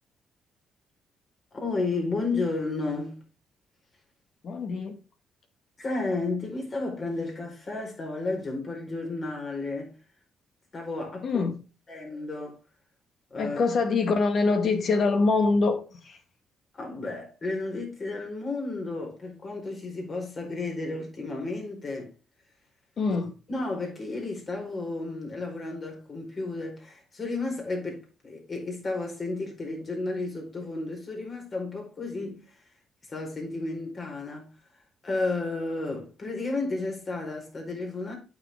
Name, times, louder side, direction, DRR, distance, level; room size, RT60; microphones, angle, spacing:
voice 1, 1.5-3.2 5.8-10.0 10.7-11.4 11.9-12.6 13.3-13.6 16.7-22.1 23.5-32.4 33.1-34.5 35.0-38.2, left 3 dB, 40° left, 4.6 m, -32 dB
voice 2, 4.4-5.0 11.2-11.5 13.4-16.2 23.0-23.3, left 3 dB, 55° left, 1.9 m, -24 dB
8.7 x 7.0 x 3.6 m
cardioid pair, 90°, 0 cm